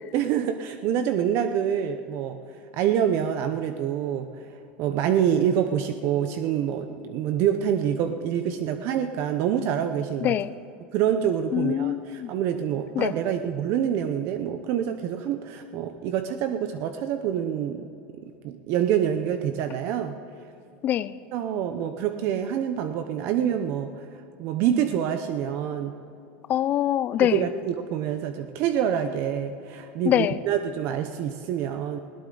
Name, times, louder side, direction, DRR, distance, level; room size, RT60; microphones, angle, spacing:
voice 1, 0.1-2.4 2.7-4.3 4.8-10.3 10.9-17.9 18.4-20.2 21.3-24.0 24.4-26.0 27.2-32.0, right 9 dB, 55° right, 8 dB, 0.8 m, -26 dB
voice 2, 10.2-10.5 11.5-12.3 13.0-13.1 20.8-21.2 26.5-27.5 30.1-30.4, left 11 dB, 35° left, 16 dB, 0.5 m, -24 dB
20.5 x 17.5 x 3.9 m, 2.8 s
supercardioid pair, 140°, 5 cm